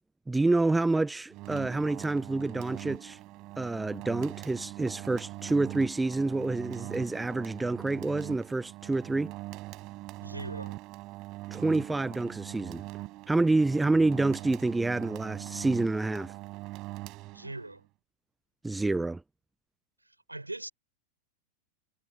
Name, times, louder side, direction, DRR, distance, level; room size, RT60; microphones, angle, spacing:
voice 1, 0.3-3.2 3.6-9.3 11.5-12.8 13.3-16.3 18.6-19.2, right 2 dB, 10° right, 0.4 m, -28 dB
sound 1, 1.3-17.8, right 19 dB, 40° right, 4.1 m, -42 dB
voice 2, 10.2-10.8 17.3-17.8 20.3-20.7, right 2 dB, 85° right, 6.1 m, -40 dB
figure-of-eight pair, 90°, 0 cm